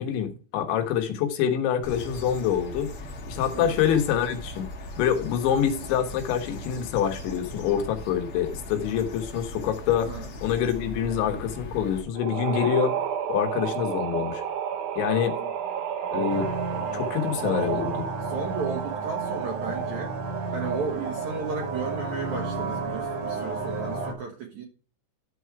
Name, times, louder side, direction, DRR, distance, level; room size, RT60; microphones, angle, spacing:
voice 1, 0.0-2.9 3.3-4.7 5.0-10.1 10.4-13.0 13.3-14.4 15.0-15.4 16.1-16.5 16.9-17.9, left 9 dB, 80° left, 5 dB, 3.6 m, -26 dB
sound 1, 1.8-12.0, left 1 dB, 50° left, 1.6 m, -39 dB
sound 2, 12.1-21.9, right 8 dB, 85° right, 1.7 m, -32 dB
sound 3, 16.3-24.1, right 3 dB, 50° right, 2.3 m, -32 dB
voice 2, 17.4-17.8 18.2-20.1 20.5-24.6, right 4 dB, 65° right, 3 dB, 1.9 m, -34 dB
12.0 x 4.7 x 4.6 m, 0.40 s
omnidirectional pair, 5.3 m